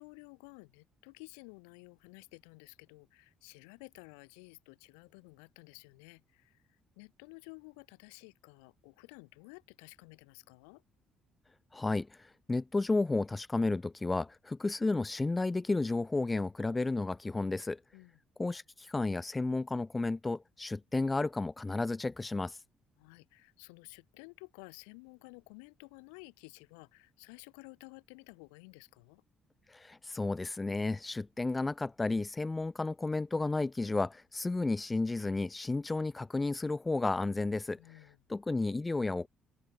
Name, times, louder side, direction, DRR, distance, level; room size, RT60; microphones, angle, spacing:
voice 1, 0.0-6.6 7.0-10.8 17.9-18.2 23.0-29.2 37.8-38.2, left 39 dB, 75° left, 2.8 m, -53 dB
voice 2, 11.7-17.8 18.4-22.6 29.7-38.0 38.3-39.3, left 3 dB, 20° left, 0.5 m, -32 dB
open air
hypercardioid pair, 50°, 0 cm